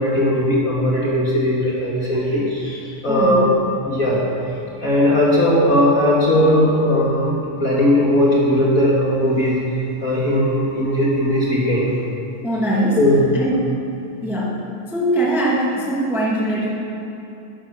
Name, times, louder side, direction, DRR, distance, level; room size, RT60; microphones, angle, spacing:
voice 1, 0.0-3.5 3.8-4.2 4.8-9.6 10.0-11.9 13.0-13.3, left 1 dB, 30° left, -6 dB, 1.8 m, -18 dB
voice 2, 3.1-3.6 12.4-13.0 13.3-13.8 14.2-16.7, right 1 dB, ahead, -5 dB, 0.9 m, -21 dB
12.5 x 11.5 x 6.1 m, 2.8 s
omnidirectional pair, 4.1 m